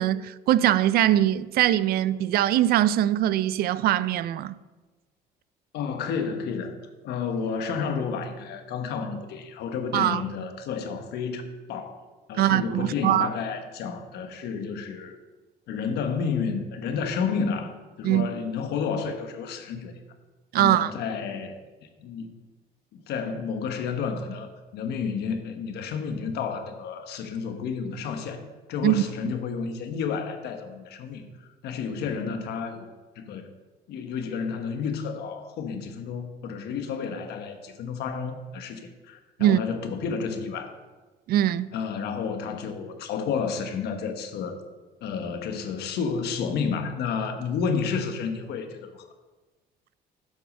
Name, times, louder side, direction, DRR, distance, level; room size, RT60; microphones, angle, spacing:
voice 1, 0.0-4.6 9.9-10.2 12.3-13.3 18.0-18.3 20.5-20.9 28.8-29.3 39.4-39.6 41.3-41.7, right 12 dB, 65° right, 0.4 m, -22 dB
voice 2, 5.7-6.7 7.0-12.0 12.3-15.2 15.7-19.9 20.6-22.3 22.9-28.4 28.7-31.3 31.6-33.5 33.9-40.8 41.7-44.6 45.0-49.0, left 6 dB, 75° left, 1.1 m, -31 dB
7.9 x 6.9 x 5.3 m
cardioid pair, 110°, 17 cm